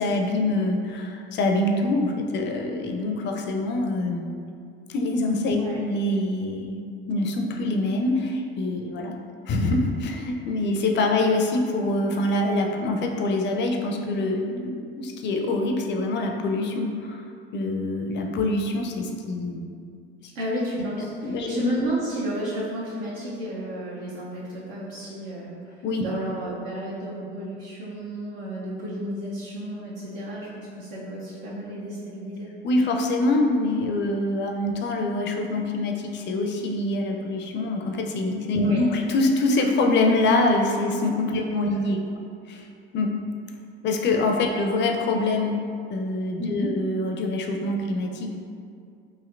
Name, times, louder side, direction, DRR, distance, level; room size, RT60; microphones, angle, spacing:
voice 1, 0.0-4.3 4.9-9.1 9.5-17.2 17.5-19.6 20.2-20.3 21.2-21.5 25.8-26.1 32.6-42.0 42.5-42.6 42.9-43.1 43.8-45.6 45.9-48.3, left 2 dB, 40° left, 2 dB, 0.4 m, -25 dB
voice 2, 20.3-25.5 26.0-32.5 38.6-38.8 41.3-41.8 46.4-46.7, equal, 75° right, -6 dB, 0.6 m, -32 dB
3.1 x 2.7 x 2.4 m, 2.3 s
hypercardioid pair, 65°, 29 cm